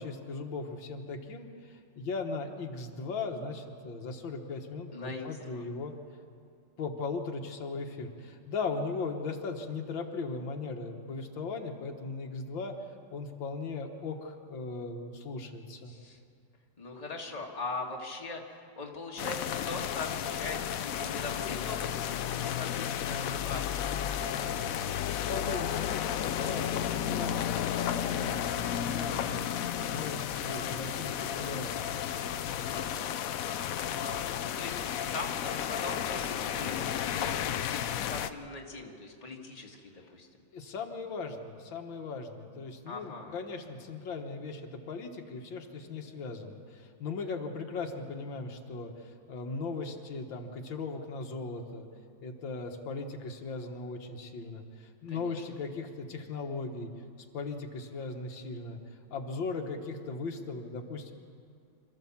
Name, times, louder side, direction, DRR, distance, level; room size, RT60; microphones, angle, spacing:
voice 1, 0.0-5.9 6.8-12.7 13.1-15.9 25.3-29.5 29.8-32.0 40.5-51.9 52.2-56.9 57.3-58.8 59.1-61.1, left 4 dB, 90° left, 3 dB, 2.1 m, -38 dB
voice 2, 4.9-5.6 15.9-16.2 16.8-24.0 32.7-33.2 34.0-40.3 42.9-43.3 55.1-55.4, left 3 dB, 20° left, 0 dB, 1.8 m, -41 dB
sound 1, 19.2-38.3, left 9 dB, 70° left, 0.8 m, -33 dB
26.5 x 14.0 x 7.3 m, 2.3 s
omnidirectional pair, 2.0 m